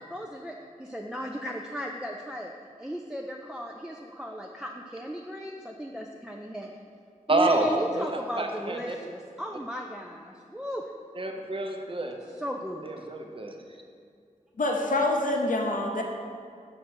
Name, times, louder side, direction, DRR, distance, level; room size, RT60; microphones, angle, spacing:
voice 1, 0.0-2.5 2.8-6.7 7.3-10.9 12.4-12.9, equal, 5° right, 0 dB, 0.4 m, -35 dB
voice 2, 7.3-7.7 7.9-9.0 11.1-12.2 12.8-13.6, right 2 dB, 40° right, 3 dB, 0.7 m, -28 dB
voice 3, 14.6-16.0, left 2 dB, 70° left, 1 dB, 0.8 m, -26 dB
6.7 x 5.0 x 4.4 m, 2.3 s
wide cardioid pair, 55°, 14 cm